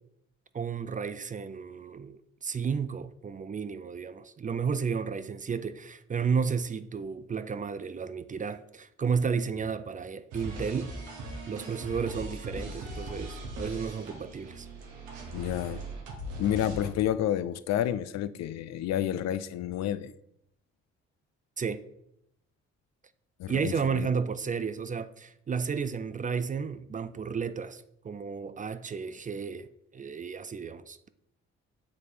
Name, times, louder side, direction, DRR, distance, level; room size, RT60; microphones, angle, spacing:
voice 1, 0.5-10.9 11.5-14.7 21.6-21.8 23.5-31.1, right 6 dB, 25° right, 0.4 m, -32 dB
sound 1, 10.3-16.9, right 1 dB, 90° right, 1.1 m, -40 dB
voice 2, 15.3-15.8 16.4-20.1 23.4-24.1, left 11 dB, 65° left, 0.4 m, -30 dB
7.1 x 3.2 x 4.3 m
supercardioid pair, 55°, 29 cm